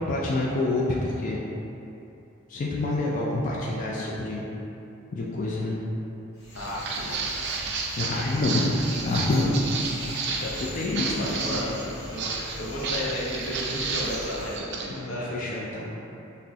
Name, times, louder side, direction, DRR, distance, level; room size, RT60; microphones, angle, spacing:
voice 1, 0.1-1.4 2.5-4.4 5.1-5.8 8.0-8.7 9.1-9.5 10.1-11.4 14.9-15.9, left 2 dB, 40° left, -4 dB, 0.4 m, -27 dB
sound 1, 6.3-14.6, equal, 55° left, 0.9 m, -41 dB
voice 2, 6.5-7.8 11.1-15.3, left 1 dB, 85° left, -6 dB, 0.8 m, -34 dB
Walk footsteps, 6.6-14.9, right 4 dB, 55° right, 0.4 m, -32 dB
6.0 x 2.1 x 2.7 m, 2.9 s
head